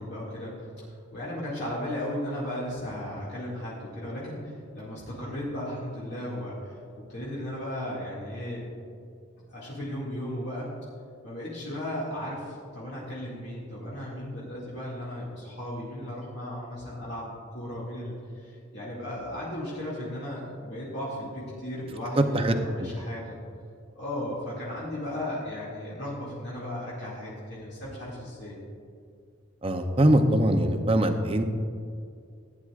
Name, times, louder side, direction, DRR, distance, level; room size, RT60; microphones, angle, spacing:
voice 1, 0.0-6.8 7.1-8.7 9.5-10.7 11.2-23.4 23.9-28.6, left 1 dB, 60° left, -8 dB, 2.3 m, -35 dB
voice 2, 22.2-22.5 22.8-22.9 29.6-31.4, right 1 dB, 30° right, 5 dB, 0.7 m, -22 dB
16.5 x 9.6 x 2.5 m, 2.3 s
head